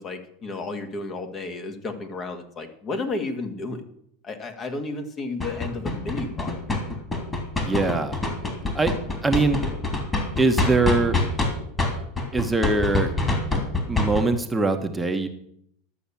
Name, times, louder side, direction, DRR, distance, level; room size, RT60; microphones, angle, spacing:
voice 1, 0.0-3.8 4.2-6.5, left 3 dB, 30° left, 7 dB, 1.9 m, -32 dB
sound 1, 5.4-11.5 11.8-14.2, left 3 dB, 15° left, 3.1 m, -25 dB
voice 2, 7.6-8.2 8.7-9.0 9.2-9.6 10.4-11.2 12.3-13.1 13.9-15.3, right 3 dB, 10° right, 5 dB, 1.2 m, -22 dB
12.0 x 7.1 x 7.1 m, 0.70 s
hypercardioid pair, 110°, 0 cm